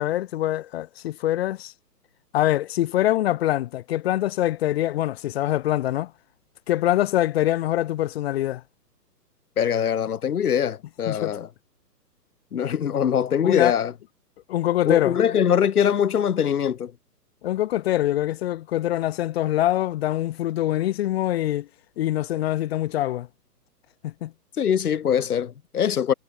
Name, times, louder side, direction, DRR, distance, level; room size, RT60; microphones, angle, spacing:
voice 1, 0.0-1.7 2.3-6.1 6.7-8.6 11.1-11.4 13.4-13.7 14.5-15.2 17.4-21.7 22.0-23.3 24.0-24.3, left 14 dB, 40° left, 2.4 m, -24 dB
voice 2, 9.6-11.5 12.5-13.9 14.8-16.9 24.6-26.1, left 8 dB, 65° left, 2.9 m, -22 dB
hypercardioid pair, 150°, 48 cm